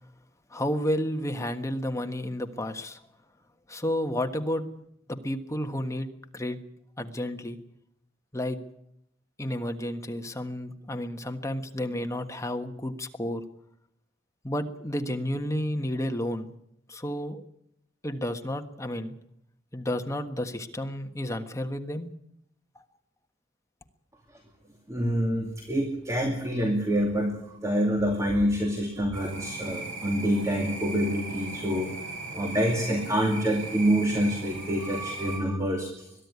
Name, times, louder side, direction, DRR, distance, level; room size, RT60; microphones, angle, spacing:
voice 1, 0.5-3.0 3.7-4.6 5.1-6.1 6.3-6.6 7.0-7.6 8.3-8.6 9.4-13.4 14.4-16.5 16.9-17.4 18.0-19.1 19.7-22.1, left 1 dB, 15° left, 6 dB, 1.4 m, -31 dB
voice 2, 24.9-31.9 32.3-35.9, equal, 15° right, 2 dB, 2.4 m, -26 dB
sound 1, 29.1-35.4, right 2 dB, 70° right, 6.3 m, -38 dB
22.0 x 12.5 x 9.6 m, 0.76 s
head